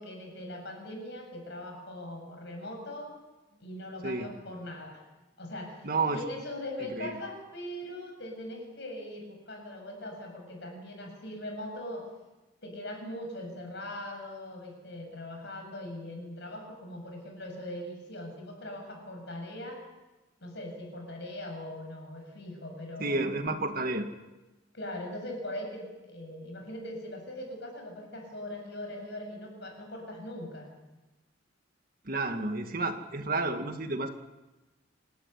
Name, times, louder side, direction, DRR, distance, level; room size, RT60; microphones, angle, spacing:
voice 1, 0.0-3.1 3.6-5.0 5.4-5.9 6.1-12.0 12.6-19.8 20.4-23.2 24.7-30.7, left 1 dB, 60° left, 3 dB, 7.5 m, -40 dB
voice 2, 5.8-6.2 7.0-7.1 23.0-24.1 32.1-34.1, right 3 dB, 45° right, 6 dB, 2.0 m, -30 dB
28.5 x 13.0 x 9.8 m, 1.1 s
head